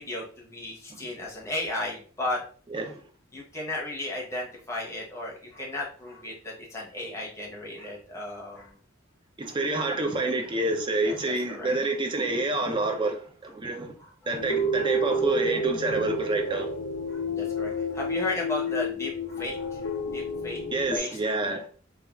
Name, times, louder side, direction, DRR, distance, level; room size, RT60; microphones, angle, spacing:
voice 1, 0.0-2.4 3.3-8.8 9.7-9.8 11.0-11.7 14.0-14.6 14.8-14.9 17.1-20.6 20.9-21.2, left 2 dB, 15° left, 0.7 m, -35 dB
voice 2, 9.4-13.9 14.3-16.7 20.7-21.7, right 2 dB, 25° right, 0.4 m, -28 dB
sound 1, 14.3-21.0, left 1 dB, 40° left, 0.4 m, -30 dB
3.2 x 2.3 x 2.3 m
head